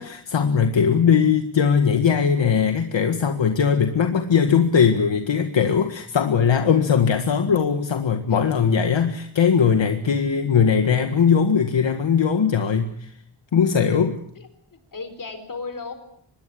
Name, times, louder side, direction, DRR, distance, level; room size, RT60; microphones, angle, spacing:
voice 1, 0.0-13.1 13.5-14.2, left 6 dB, 65° left, 6 dB, 1.8 m, -20 dB
voice 2, 0.8-1.4 8.3-8.4 14.4-15.9, left 4 dB, 40° left, 10 dB, 4.3 m, -37 dB
25.0 x 21.5 x 8.4 m, 0.66 s
wide cardioid pair, 175°, 47 cm